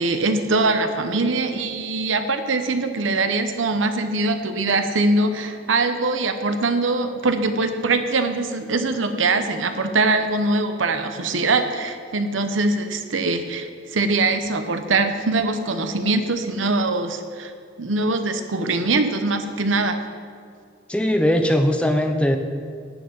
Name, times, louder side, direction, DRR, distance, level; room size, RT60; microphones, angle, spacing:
voice 1, 0.0-17.5 17.8-20.0, right 3 dB, 90° right, 8 dB, 0.9 m, -22 dB
voice 2, 20.9-22.4, equal, 5° left, 6 dB, 0.6 m, -19 dB
12.5 x 4.5 x 8.5 m, 2.3 s
head